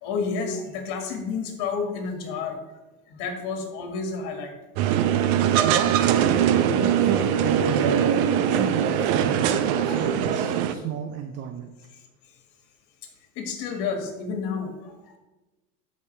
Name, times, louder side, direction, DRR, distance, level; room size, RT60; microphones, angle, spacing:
voice 1, 0.0-2.6 3.1-4.5 5.1-5.6 6.5-6.6 9.8-10.1 11.9-12.0 13.4-15.2, left 5 dB, 60° left, 4 dB, 2.1 m, -31 dB
sound 1, 4.8-10.7, right 9 dB, 60° right, 0.8 m, -22 dB
voice 2, 5.6-6.2 6.8-8.1 8.5-11.7, right 8 dB, 35° right, 6 dB, 0.7 m, -32 dB
13.0 x 5.3 x 3.3 m, 1.1 s
supercardioid pair, 110°, 46 cm